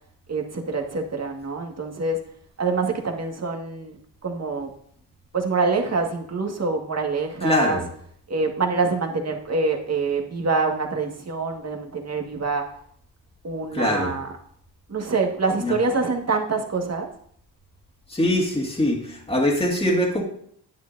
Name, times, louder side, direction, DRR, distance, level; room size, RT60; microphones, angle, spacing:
voice 1, 0.3-2.2 2.6-4.0 4.2-4.7 5.3-7.8 8.3-12.6 13.4-14.3 14.9-17.1, right 4 dB, 35° right, 2 dB, 1.9 m, -25 dB
voice 2, 7.4-7.8 13.7-14.1 15.6-15.7 18.1-20.2, left 1 dB, 15° left, -2 dB, 2.2 m, -22 dB
9.4 x 9.1 x 2.7 m, 0.63 s
supercardioid pair, 60°, 42 cm